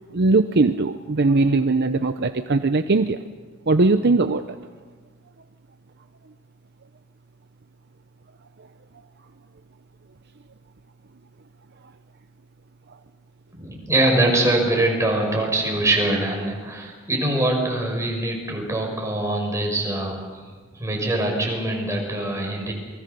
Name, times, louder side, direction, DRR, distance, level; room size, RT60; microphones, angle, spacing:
voice 1, 0.1-3.2 3.7-4.6, right 3 dB, 55° right, 9 dB, 0.7 m, -20 dB
voice 2, 13.5-20.2 20.7-22.7, right 1 dB, 15° right, 0 dB, 5.8 m, -23 dB
28.0 x 22.0 x 6.9 m, 1.5 s
head